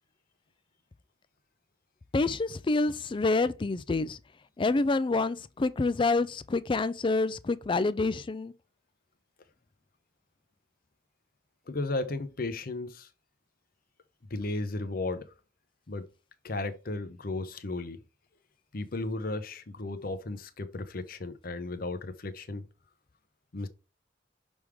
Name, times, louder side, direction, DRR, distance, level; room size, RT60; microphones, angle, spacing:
voice 1, 2.1-4.2 4.6-8.5, left 3 dB, 25° left, 0.4 m, -27 dB
voice 2, 11.7-13.1 14.3-15.3 15.9-16.1 16.4-18.0 18.7-22.7 23.5-23.7, left 2 dB, 50° left, 0.8 m, -34 dB
6.3 x 3.5 x 4.8 m
head